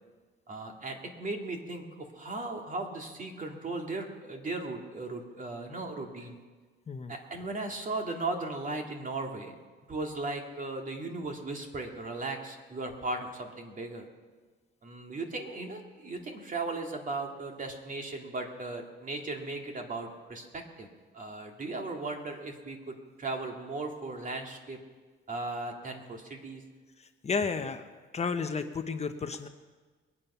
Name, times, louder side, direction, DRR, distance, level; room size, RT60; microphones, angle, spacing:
voice 1, 0.5-6.4 7.1-9.5 9.9-14.1 14.8-20.9 21.1-24.8 25.3-26.6, right 2 dB, 40° right, 2 dB, 2.4 m, -37 dB
voice 2, 27.0-27.8 28.1-29.5, left 5 dB, 35° left, 8 dB, 0.9 m, -32 dB
22.0 x 8.7 x 5.6 m, 1.4 s
cardioid pair, 90°, 20 cm